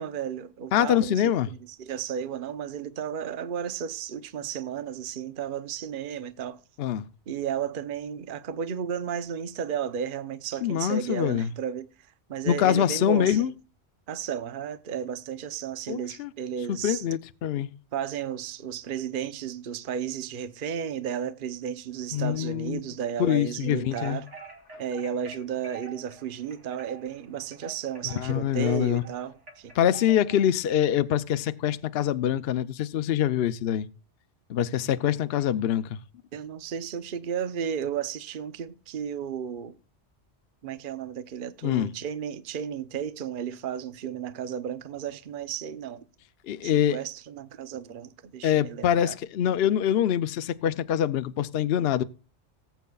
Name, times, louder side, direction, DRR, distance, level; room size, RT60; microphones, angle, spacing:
voice 1, 0.0-6.6 7.3-11.9 12.3-13.5 14.1-17.0 17.9-24.3 24.8-29.7 36.3-39.7 40.6-46.0 46.6-49.1, right 8 dB, 50° right, 0.8 m, -33 dB
voice 2, 0.7-1.5 6.8-7.1 10.6-11.5 12.5-13.5 15.9-16.3 16.7-17.7 22.1-22.8 23.2-24.2 28.2-29.0 29.8-33.9 34.5-36.0 41.6-41.9 46.4-47.0 48.4-52.0, left 10 dB, 65° left, 0.8 m, -25 dB
sound 1, 23.9-30.5, right 4 dB, 80° right, 3.0 m, -46 dB
19.5 x 8.1 x 2.3 m
omnidirectional pair, 1.2 m